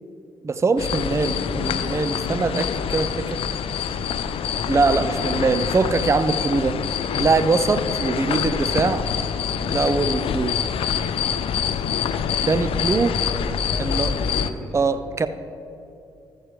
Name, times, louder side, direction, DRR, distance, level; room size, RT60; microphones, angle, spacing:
voice 1, 0.4-3.4 4.7-6.8 7.2-9.0 9.7-10.6 12.4-13.2 13.8-14.1 14.7-15.3, right 4 dB, 25° right, 11 dB, 0.5 m, -22 dB
sound 1, 0.8-14.5, left 7 dB, 60° left, 0.5 m, -25 dB
voice 2, 5.0-5.3 8.2-8.7 11.3-11.5 13.2-14.9, left 1 dB, 10° left, -3 dB, 2.2 m, -40 dB
14.0 x 7.9 x 3.1 m, 2.7 s
hypercardioid pair, 45°, 11 cm